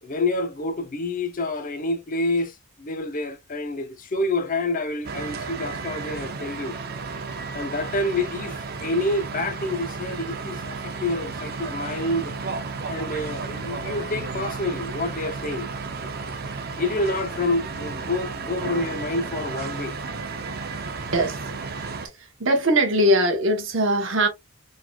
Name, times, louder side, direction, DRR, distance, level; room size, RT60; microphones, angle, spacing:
voice 1, 0.0-6.8 7.5-12.3 12.9-15.7 16.8-20.0, left 2 dB, 40° left, 0.7 m, -28 dB
sound 1, 5.0-22.1, right 4 dB, 45° right, 0.6 m, -33 dB
voice 2, 22.2-24.3, right 1 dB, 60° right, 1.1 m, -21 dB
3.9 x 3.1 x 2.3 m
head